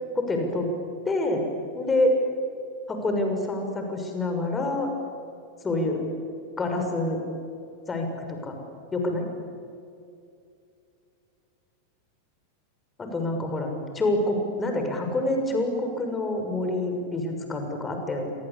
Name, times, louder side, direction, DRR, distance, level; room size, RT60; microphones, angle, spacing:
voice 1, 0.1-0.7 1.1-1.5 1.7-2.1 2.9-4.9 5.6-6.0 6.6-7.2 7.9-8.6 8.9-9.3 13.0-18.3, left 2 dB, 15° left, 4 dB, 6.2 m, -27 dB
28.0 x 25.0 x 8.5 m, 2.5 s
figure-of-eight pair, 90°, 0 cm